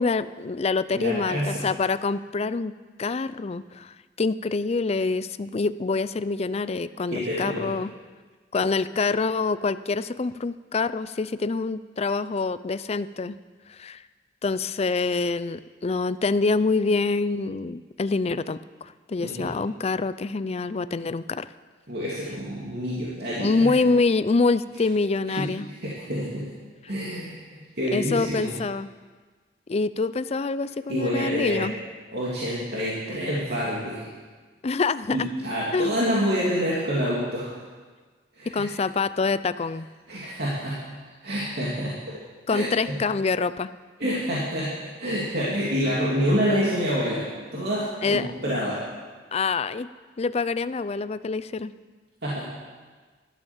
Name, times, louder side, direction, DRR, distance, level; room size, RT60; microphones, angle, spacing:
voice 1, 0.0-2.7 3.0-7.9 8.5-13.3 13.7-14.0 14.4-21.5 23.4-25.7 27.9-28.9 29.7-31.7 34.6-35.3 35.7-36.0 38.5-39.9 42.5-43.7 48.0-48.3 49.3-49.9 50.2-51.7, left 4 dB, 35° left, 15 dB, 0.4 m, -26 dB
voice 2, 0.9-1.6 7.1-7.7 19.2-19.5 21.9-23.7 25.4-25.5 25.8-26.5 26.9-28.5 30.9-31.7 32.1-34.0 35.1-37.6 38.3-38.6 40.1-40.8 41.2-42.1 42.5-43.0 44.0-44.7 45.0-47.2 47.5-48.8 52.2-52.4, equal, 60° right, -7 dB, 2.9 m, -27 dB
13.0 x 12.0 x 7.2 m, 1.4 s
head